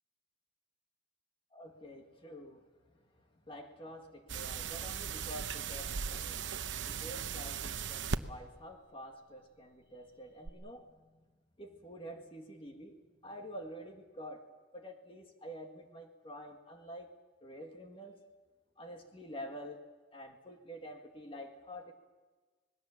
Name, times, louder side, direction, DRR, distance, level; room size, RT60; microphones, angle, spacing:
voice 1, 1.5-2.6 3.5-6.5 6.9-10.9 11.6-13.0 13.2-14.4 14.7-17.1 17.4-18.1 18.8-19.8 20.1-21.9, equal, 30° left, 3 dB, 2.0 m, -48 dB
sound 1, 4.3-8.2 10.5-10.6, right 6 dB, 70° right, 0.8 m, -38 dB
25.5 x 20.0 x 7.3 m, 1.3 s
head